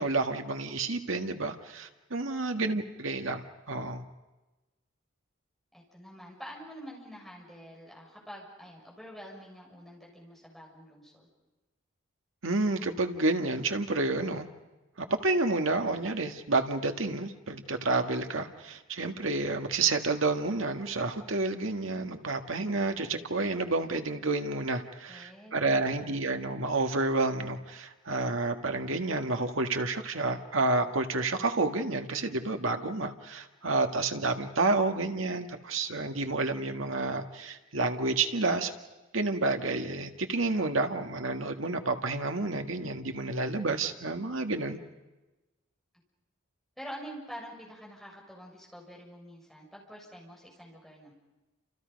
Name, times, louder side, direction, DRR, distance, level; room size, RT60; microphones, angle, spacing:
voice 1, 0.0-4.0 12.4-14.5 15.0-38.7 39.1-44.8, right 3 dB, 80° right, 5 dB, 1.8 m, -30 dB
voice 2, 5.7-11.3 25.1-26.5 46.8-51.1, equal, ahead, -3 dB, 6.8 m, -47 dB
30.0 x 28.0 x 5.3 m, 1.1 s
head